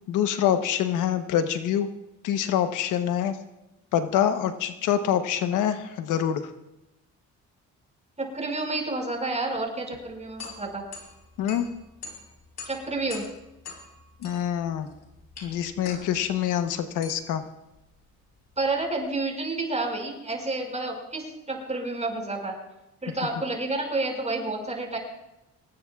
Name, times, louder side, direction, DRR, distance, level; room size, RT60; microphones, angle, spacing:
voice 1, 0.1-1.9 2.2-3.4 3.9-6.5 11.4-11.7 14.2-14.9 15.4-17.4, left 9 dB, 90° left, 8 dB, 1.1 m, -25 dB
voice 2, 8.2-10.8 12.7-13.3 18.6-22.6 23.0-25.0, right 2 dB, 25° right, 1 dB, 5.7 m, -30 dB
sound 1, 9.9-19.1, left 4 dB, 55° left, 5.3 m, -45 dB
24.5 x 19.5 x 2.4 m, 0.94 s
cardioid pair, 90°, 30 cm